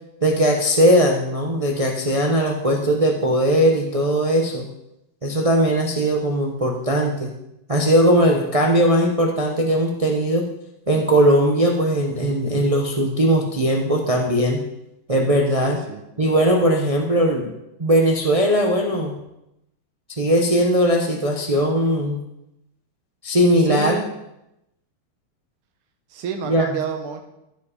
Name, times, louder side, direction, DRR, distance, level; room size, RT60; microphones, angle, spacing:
voice 1, 0.2-4.7 5.2-7.3 7.7-10.5 10.9-14.6 15.1-15.8 16.2-17.5 17.8-19.1 20.2-22.2 23.2-24.0 26.5-26.7, equal, 55° right, 1 dB, 0.3 m, -19 dB
voice 2, 15.6-16.0 23.6-24.1 26.1-27.2, right 7 dB, 75° right, 4 dB, 1.9 m, -29 dB
15.0 x 5.0 x 5.0 m, 0.86 s
omnidirectional pair, 2.4 m